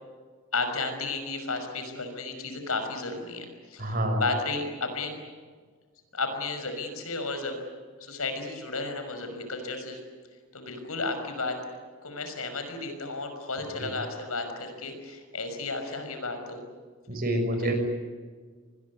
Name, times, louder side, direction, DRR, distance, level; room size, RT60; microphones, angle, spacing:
voice 1, 0.5-5.2 6.1-7.6 8.0-10.0 10.5-11.6 12.0-16.6 17.6-17.7, left 3 dB, 75° left, 6 dB, 5.9 m, -33 dB
voice 2, 3.8-4.2 17.1-17.7, right 1 dB, 40° right, 5 dB, 6.2 m, -27 dB
26.0 x 21.0 x 9.7 m, 1.5 s
head